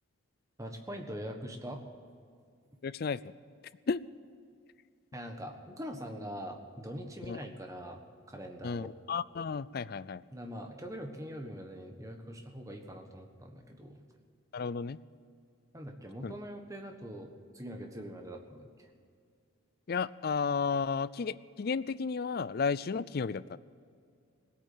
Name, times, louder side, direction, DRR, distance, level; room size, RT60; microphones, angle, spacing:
voice 1, 0.6-1.8 5.1-8.0 8.3-8.9 10.3-14.0 15.7-18.7, equal, 15° right, 4 dB, 1.4 m, -43 dB
voice 2, 2.8-3.2 3.9-4.0 7.2-7.4 8.6-10.2 14.5-15.0 16.2-16.3 19.9-23.6, left 5 dB, 45° left, 17 dB, 0.4 m, -33 dB
17.5 x 8.5 x 9.0 m, 2.3 s
head